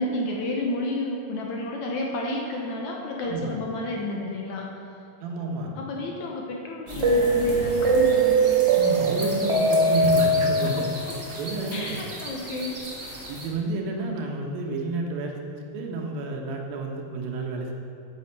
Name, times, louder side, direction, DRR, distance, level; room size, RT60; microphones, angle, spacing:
voice 1, 0.0-4.7 5.8-8.6 9.0-9.1 10.6-11.2 11.7-12.8, left 1 dB, 65° left, 0 dB, 2.1 m, -31 dB
voice 2, 5.2-5.7 8.7-10.9 11.4-12.0 13.3-17.7, right 3 dB, 80° right, 1 dB, 3.0 m, -30 dB
sound 1, 6.9-13.5, right 2 dB, 50° right, 0.8 m, -23 dB
9.9 x 8.7 x 6.8 m, 3.0 s
omnidirectional pair, 4.1 m